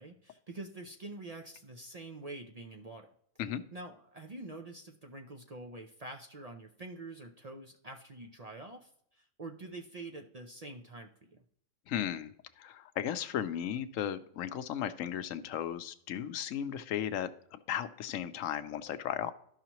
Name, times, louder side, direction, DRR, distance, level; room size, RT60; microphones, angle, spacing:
voice 1, 0.0-3.1 3.7-11.4, right 2 dB, 45° right, 3 dB, 0.5 m, -46 dB
voice 2, 11.9-19.3, left 10 dB, 90° left, 12 dB, 1.0 m, -36 dB
12.5 x 5.7 x 2.9 m, 0.70 s
omnidirectional pair, 1.3 m